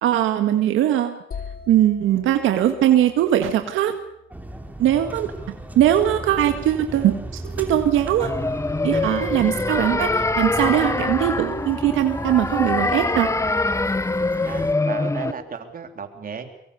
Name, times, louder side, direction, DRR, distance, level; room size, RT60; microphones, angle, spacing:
voice 1, 0.0-1.2 1.7-3.9 4.8-5.3 5.8-8.3 8.8-13.3, right 11 dB, 85° right, 7 dB, 1.8 m, -20 dB
sound 1, 1.3-5.1, left 6 dB, 45° left, 4.0 m, -41 dB
sound 2, 4.3-14.7, right 2 dB, 10° right, 3.2 m, -35 dB
sound 3, 8.2-15.3, left 3 dB, 15° left, 0.9 m, -24 dB
voice 2, 14.5-16.5, right 6 dB, 45° right, 6 dB, 3.7 m, -34 dB
24.0 x 23.5 x 7.0 m, 0.73 s
cardioid pair, 90°, 20 cm